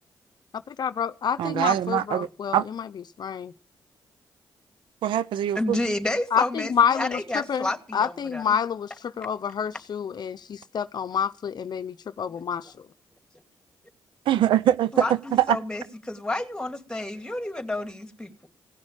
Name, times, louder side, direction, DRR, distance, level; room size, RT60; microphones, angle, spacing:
voice 1, 0.8-2.8 3.2-3.5 6.3-8.9 9.2-12.7, left 7 dB, 55° left, 0.7 m, -27 dB
voice 2, 1.4-2.7 5.0-5.8 14.3-15.6, right 11 dB, 85° right, 0.6 m, -23 dB
voice 3, 5.5-8.6 12.2-12.7 14.9-18.5, left 1 dB, 10° left, 2.5 m, -31 dB
17.5 x 6.4 x 8.8 m
cardioid pair, 70°, 8 cm